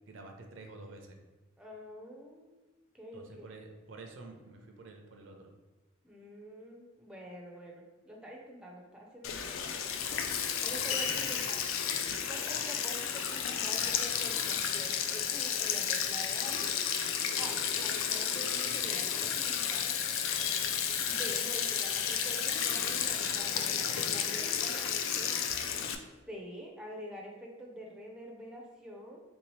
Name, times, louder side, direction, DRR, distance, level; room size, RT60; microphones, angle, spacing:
voice 1, 0.1-1.2 3.1-5.5 10.7-11.3 12.3-12.6, right 2 dB, 75° right, 3 dB, 0.5 m, -49 dB
voice 2, 1.6-2.5 2.9-3.5 6.0-9.7 10.3-11.6 12.0-16.8 17.4-19.9 21.0-25.3 26.3-29.2, equal, 5° right, -2 dB, 0.4 m, -46 dB
Sink (filling or washing), 9.2-26.0, left 8 dB, 90° left, 0.3 m, -32 dB
3.5 x 2.7 x 3.1 m, 1.2 s
head